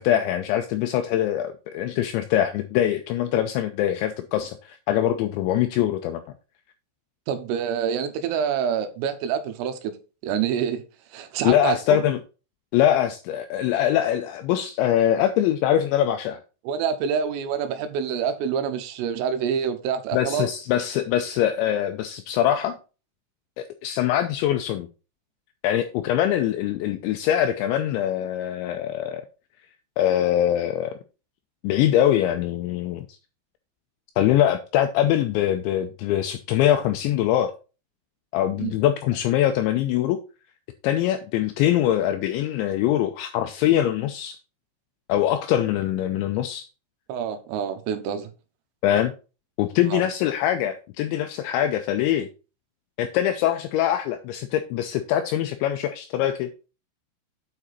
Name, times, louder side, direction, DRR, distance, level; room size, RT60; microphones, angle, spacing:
voice 1, 0.0-6.2 11.4-12.2 12.7-16.4 20.1-22.8 23.6-24.9 25.6-29.3 30.0-31.0 31.6-33.1 34.2-37.5 38.3-40.2 40.8-44.4 45.1-46.7 48.8-49.1 49.6-52.3 53.0-56.5, left 11 dB, 85° left, 2.6 m, -23 dB
voice 2, 7.3-9.9 10.2-10.8 11.1-12.0 16.7-20.5 38.6-38.7 47.1-48.3 49.9-50.0, right 7 dB, 90° right, 3.6 m, -26 dB
8.8 x 4.9 x 4.1 m
omnidirectional pair, 5.8 m